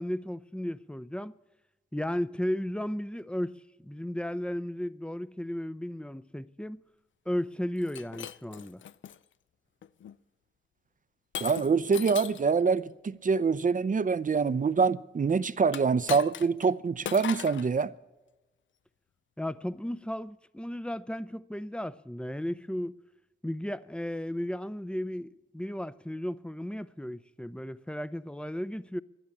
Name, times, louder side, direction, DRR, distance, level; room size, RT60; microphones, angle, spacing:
voice 1, 0.0-1.3 1.9-6.8 7.3-8.8 19.4-22.9 23.4-29.0, left 1 dB, 5° left, 0.6 m, -34 dB
Shatter, 7.8-9.2 9.8-10.2 11.3-12.5 15.7-16.7 17.0-17.7, left 9 dB, 70° left, 0.5 m, -39 dB
voice 2, 11.4-17.9, right 5 dB, 40° right, 0.6 m, -25 dB
12.0 x 10.5 x 8.5 m
cardioid pair, 50°, 20 cm